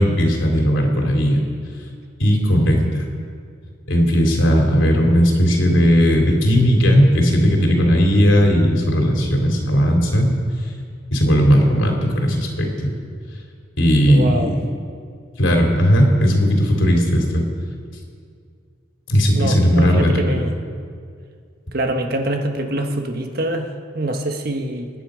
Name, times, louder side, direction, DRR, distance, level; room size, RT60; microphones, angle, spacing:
voice 1, 0.0-1.4 2.2-3.0 3.9-10.3 11.1-12.9 13.8-14.6 15.4-17.5 19.1-20.4, equal, 85° left, 1 dB, 3.2 m, -16 dB
voice 2, 14.1-14.5 19.3-20.5 21.7-24.9, right 1 dB, 50° right, 4 dB, 1.4 m, -24 dB
27.0 x 10.0 x 5.1 m, 2.2 s
head